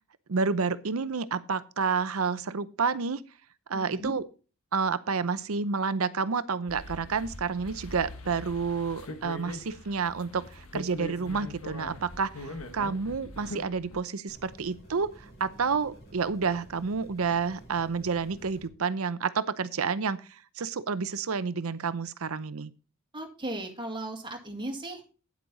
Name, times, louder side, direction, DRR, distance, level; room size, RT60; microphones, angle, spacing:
voice 1, 0.3-3.2 3.7-4.2 4.7-15.1 15.4-20.2 20.6-22.7, right 5 dB, 70° right, 15 dB, 0.7 m, -29 dB
voice 2, 3.7-4.1 23.1-25.0, right 1 dB, 20° right, 2 dB, 2.1 m, -36 dB
sound 1, 6.7-14.0, left 2 dB, 70° left, 1.5 m, -42 dB
sound 2, 14.3-18.7, right 1 dB, 50° left, 4.6 m, -51 dB
9.5 x 8.5 x 4.0 m, 0.35 s
head